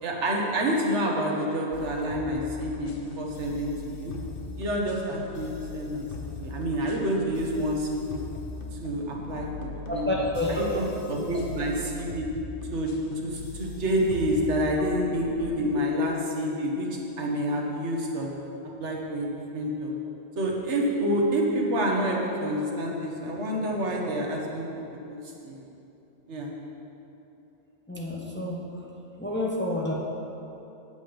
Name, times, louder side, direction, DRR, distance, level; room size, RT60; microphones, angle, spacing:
voice 1, 0.0-4.1 4.6-8.2 8.8-12.3 12.7-18.3 18.8-19.9 20.4-24.7 25.1-25.2 25.4-25.6 26.3-26.5, equal, 75° right, -1 dB, 1.4 m, -28 dB
sound 1, 1.7-15.3, left 3 dB, 55° left, 1.0 m, -39 dB
voice 2, 9.9-10.7 27.9-28.6 29.2-29.9, left 1 dB, 10° left, -3 dB, 0.8 m, -29 dB
8.1 x 7.5 x 5.1 m, 2.9 s
omnidirectional pair, 1.2 m